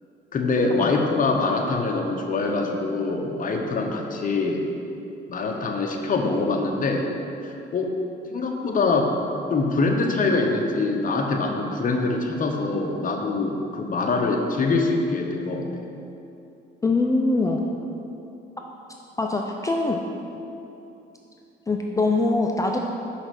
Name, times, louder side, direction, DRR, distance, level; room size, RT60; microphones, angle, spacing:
voice 1, 0.3-4.6 5.3-7.1 7.4-7.9 8.3-9.1 9.5-15.7, left 3 dB, 45° left, 2 dB, 0.9 m, -24 dB
voice 2, 16.8-17.6 19.2-20.0 21.7-22.8, left 2 dB, 15° left, 1 dB, 0.5 m, -23 dB
5.7 x 5.4 x 5.8 m, 2.8 s
cardioid pair, 90°, 20 cm